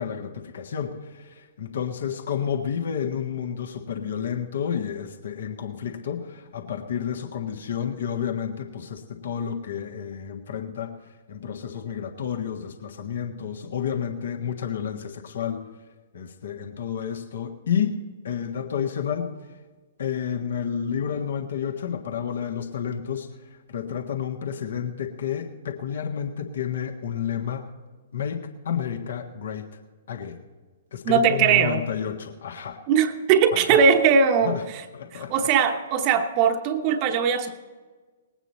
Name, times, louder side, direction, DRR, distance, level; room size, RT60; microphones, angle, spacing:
voice 1, 0.0-10.9 11.3-15.6 16.1-18.0 18.2-19.3 20.0-23.3 23.7-27.7 28.1-29.7 30.1-30.4 30.9-32.8 33.5-33.8 34.4-34.6 34.9-35.5, left 8 dB, 60° left, 2 dB, 1.5 m, -30 dB
voice 2, 31.0-31.8 32.9-34.6 35.1-37.6, right 6 dB, 35° right, 6 dB, 0.9 m, -20 dB
20.0 x 9.0 x 4.2 m, 1.4 s
figure-of-eight pair, 115°, 0 cm